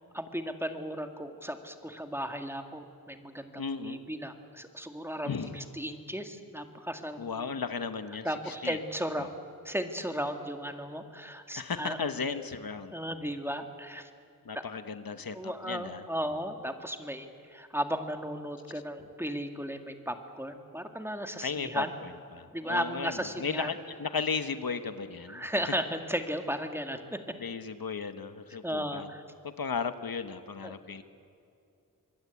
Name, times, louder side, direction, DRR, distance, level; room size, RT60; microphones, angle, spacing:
voice 1, 0.1-7.5 8.2-9.3 9.6-12.0 12.9-14.1 14.5-14.6 15.3-21.9 22.5-23.7 25.3-27.2 28.6-29.2 30.6-30.8, equal, 5° right, 6 dB, 2.0 m, -35 dB
voice 2, 3.6-4.0 5.2-5.6 7.2-8.8 9.2-9.3 11.5-13.2 14.4-16.0 21.4-25.4 27.4-29.1 29.4-31.0, left 5 dB, 75° left, 10 dB, 1.3 m, -35 dB
25.5 x 22.0 x 8.4 m, 2.6 s
wide cardioid pair, 80°, 35 cm